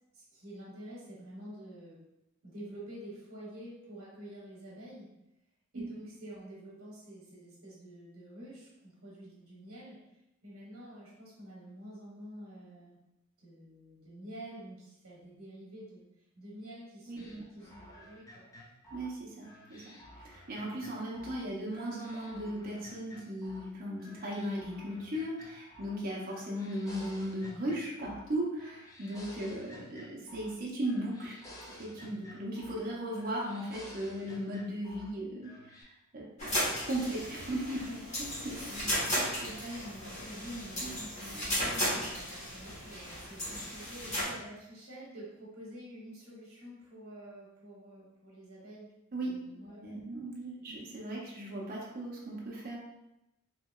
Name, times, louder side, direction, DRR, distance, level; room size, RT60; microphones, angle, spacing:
voice 1, 0.1-2.0 2.4-5.1 5.7-13.0 13.4-16.0 16.3-18.5 29.3-29.6 37.8-38.0 39.6-48.9 49.2-50.1 50.5-50.8, equal, 80° right, -5 dB, 0.9 m, -48 dB
voice 2, 17.1-17.4 18.9-31.3 31.7-36.5 36.9-37.8 38.2-39.7 40.8-40.9 41.9-42.1 49.1-49.3 49.7-52.8, right 1 dB, 45° right, -4 dB, 0.6 m, -37 dB
sound 1, 17.2-21.4 21.7-23.7 24.0-26.0 26.3-28.3 28.6-30.6 30.8-32.9 33.1-35.1 35.4-35.8, left 1 dB, 15° left, 0.4 m, -52 dB
sound 2, 36.4-44.2, equal, 30° left, 1.0 m, -35 dB
2.8 x 2.8 x 2.3 m, 0.86 s
head